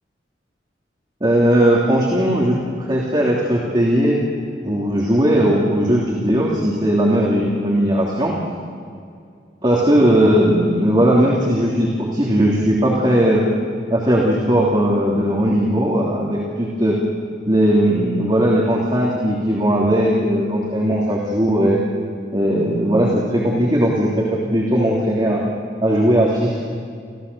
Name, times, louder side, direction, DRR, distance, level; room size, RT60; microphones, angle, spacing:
voice 1, 1.2-4.2 4.6-8.3 9.6-13.5 13.9-17.0 17.5-21.8 22.3-25.4 25.8-26.6, equal, 25° right, -4 dB, 3.2 m, -18 dB
27.5 x 16.0 x 6.9 m, 2.3 s
head